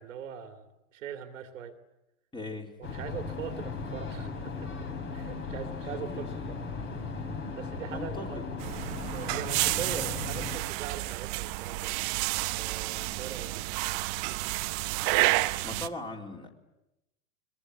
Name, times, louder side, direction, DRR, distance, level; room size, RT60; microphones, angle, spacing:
voice 1, 0.0-1.8 2.8-4.7 5.1-6.6 7.6-8.5 9.1-11.9 12.6-13.6, right 8 dB, 65° right, 7 dB, 2.6 m, -41 dB
voice 2, 2.3-2.8 6.0-6.4 7.9-8.5 15.6-16.5, left 2 dB, 10° left, 2 dB, 3.9 m, -39 dB
sound 1, 2.8-10.6, left 4 dB, 30° left, 4.0 m, -37 dB
sound 2, 8.6-15.9, right 20 dB, 40° right, 1.0 m, -30 dB
22.0 x 22.0 x 9.9 m, 0.92 s
hypercardioid pair, 110°, 42 cm